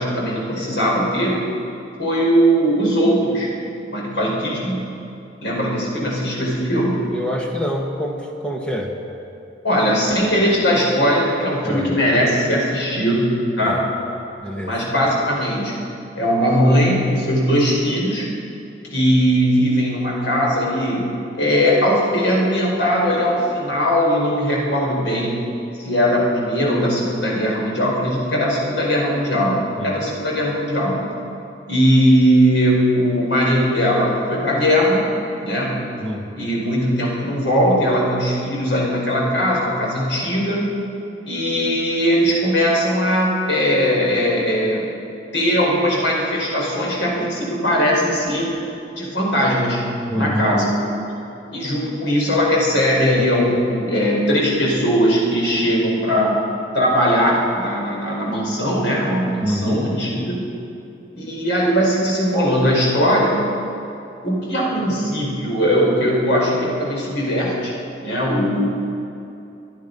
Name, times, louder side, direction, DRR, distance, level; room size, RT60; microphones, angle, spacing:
voice 1, 0.0-1.4 2.0-3.5 3.9-4.8 5.4-7.0 9.6-13.3 13.6-13.8 14.6-15.7 16.1-18.3 18.9-21.0 21.3-25.4 25.8-31.0 31.7-35.1 35.4-35.7 36.4-40.7 41.2-44.9 45.3-48.5 49.0-49.8 50.1-51.1 51.5-56.4 56.7-60.4 61.1-63.4 64.2-67.7 68.0-68.7, equal, 80° left, -3 dB, 5.1 m, -19 dB
voice 2, 7.1-8.9 11.6-11.9 13.6-13.8 14.4-14.8 29.8-30.1 36.0-36.3 50.1-50.6 59.4-59.9, equal, 5° left, 0 dB, 1.6 m, -25 dB
25.0 x 10.5 x 5.4 m, 2.7 s
head